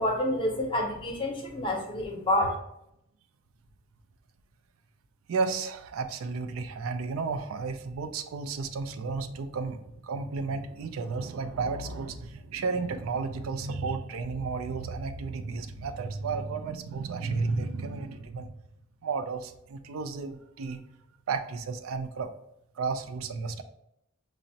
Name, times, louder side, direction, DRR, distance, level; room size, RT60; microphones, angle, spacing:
voice 1, 0.0-2.5, left 1 dB, 25° left, 1 dB, 0.7 m, -28 dB
voice 2, 5.3-18.5 19.0-20.8 21.3-22.3 22.8-23.6, right 4 dB, 80° right, 8 dB, 0.4 m, -33 dB
5.8 x 2.0 x 2.7 m, 0.80 s
head